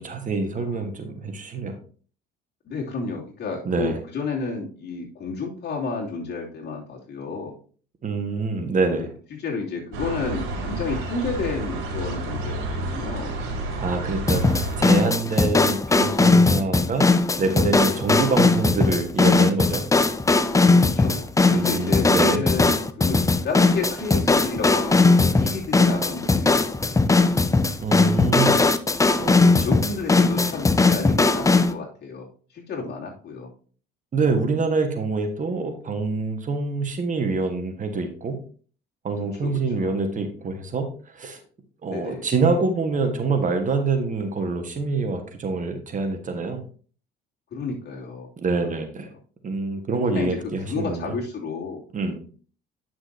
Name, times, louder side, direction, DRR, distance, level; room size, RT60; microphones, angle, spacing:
voice 1, 0.0-1.7 3.6-4.0 8.0-9.1 13.8-14.4 14.8-17.1 17.4-19.8 21.5-22.4 27.8-28.6 29.2-29.7 34.1-38.4 39.0-41.4 41.8-46.6 48.4-49.1 49.4-51.1 51.9-52.2, right 3 dB, 40° right, 6 dB, 1.6 m, -25 dB
voice 2, 2.6-7.5 8.9-9.1 9.4-13.4 20.7-26.7 27.1-27.3 28.5-28.7 29.4-33.5 39.4-39.9 41.9-42.3 47.5-48.3 48.6-48.7 50.1-50.4 50.7-51.8, left 4 dB, 55° left, -2 dB, 2.9 m, -31 dB
sound 1, 9.9-15.0, right 1 dB, 75° right, 3.4 m, -30 dB
sound 2, 14.3-31.7, left 3 dB, 15° left, 0.6 m, -19 dB
9.9 x 6.0 x 2.8 m, 0.42 s
supercardioid pair, 80°, 21 cm